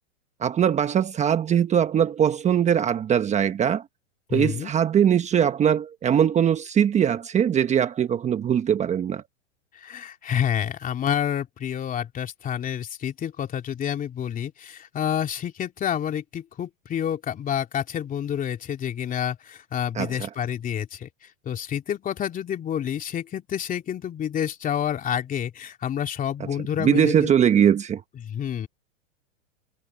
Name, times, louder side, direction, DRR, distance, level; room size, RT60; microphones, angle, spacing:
voice 1, 0.4-3.8 4.3-9.2 19.9-20.3 26.4-28.0, right 9 dB, 20° right, 1.2 m, -21 dB
voice 2, 4.3-4.7 9.8-21.1 21.4-27.3 28.2-28.7, left 9 dB, 20° left, 3.0 m, -28 dB
hypercardioid pair, 130°, 36 cm